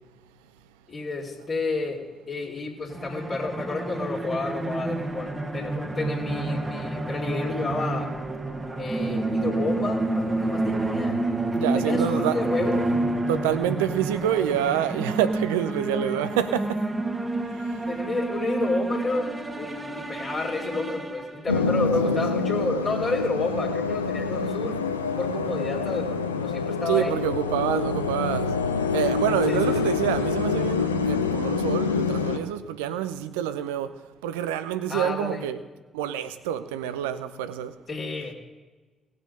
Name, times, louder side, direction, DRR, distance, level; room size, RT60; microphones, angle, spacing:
voice 1, 0.9-8.1 8.8-11.2 11.7-12.8 17.9-24.8 25.2-27.2 29.5-29.9 34.9-35.4 37.9-38.4, left 3 dB, 50° left, 2.5 m, -30 dB
sound 1, 2.9-21.7, right 2 dB, 25° right, 1.3 m, -29 dB
voice 2, 11.6-12.4 13.3-16.9 17.5-17.8 22.0-22.2 26.9-28.6 28.9-35.6 35.9-37.8, right 10 dB, 75° right, 0.5 m, -27 dB
sound 2, 21.5-32.4, left 5 dB, 90° left, 0.5 m, -26 dB
18.5 x 6.5 x 5.3 m
figure-of-eight pair, 40°, 0 cm